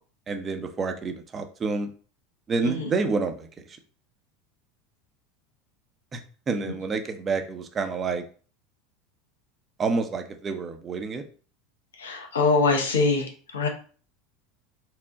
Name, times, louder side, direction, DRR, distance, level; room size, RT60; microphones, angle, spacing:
voice 1, 0.3-1.9 2.5-3.8 6.1-6.2 6.5-8.2 9.8-11.2, right 4 dB, 30° right, 5 dB, 0.7 m, -28 dB
voice 2, 12.0-13.7, left 3 dB, 85° left, 4 dB, 0.8 m, -24 dB
4.5 x 2.0 x 3.6 m, 0.40 s
hypercardioid pair, 80°, 0 cm